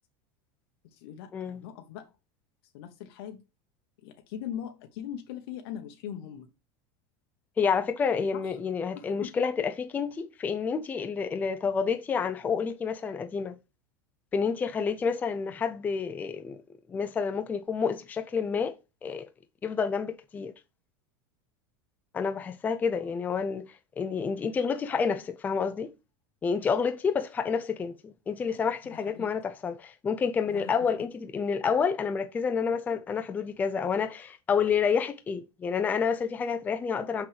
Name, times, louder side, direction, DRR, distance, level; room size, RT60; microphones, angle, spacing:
voice 1, 0.8-2.1 2.7-3.4 4.0-6.5 8.3-8.6 8.9-9.3 22.9-23.1 28.9-29.4 30.5-30.7, left 9 dB, 70° left, 1.0 m, -41 dB
voice 2, 7.6-13.6 14.3-16.6 16.9-18.8 19.0-19.3 19.6-20.5 22.1-23.6 24.0-25.9 26.4-37.3, left 6 dB, 15° left, 0.5 m, -29 dB
6.2 x 6.0 x 3.3 m
supercardioid pair, 165°, 13 cm